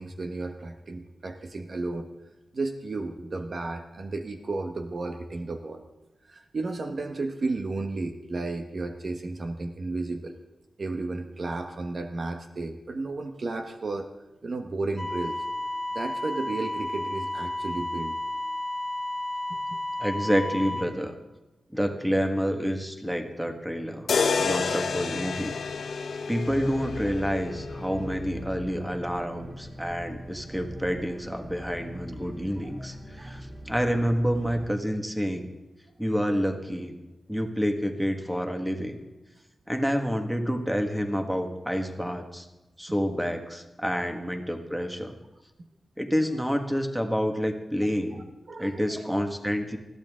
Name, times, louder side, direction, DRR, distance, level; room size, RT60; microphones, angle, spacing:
voice 1, 0.0-2.1 2.5-5.8 6.3-10.4 10.8-14.1 14.4-15.4 15.9-18.2 19.5-19.8 24.4-24.5 26.0-26.1 32.8-32.9 33.2-33.3 33.9-34.1 48.1-48.2 48.5-49.1, right 3 dB, 50° right, 5 dB, 1.2 m, -33 dB
sound 1, 15.0-20.8, left 1 dB, 15° left, 2.5 m, -32 dB
voice 2, 20.0-21.2 21.7-24.1 24.4-25.5 25.9-35.5 36.0-36.9 37.3-39.0 39.7-42.4 42.8-45.1 46.0-48.2 48.6-49.8, equal, 5° right, 5 dB, 1.7 m, -28 dB
sound 2, 24.1-28.2, left 5 dB, 85° left, 1.0 m, -29 dB
sound 3, 26.4-34.7, equal, 20° right, 3.8 m, -41 dB
20.5 x 14.5 x 3.7 m, 1.0 s
wide cardioid pair, 115°, 0 cm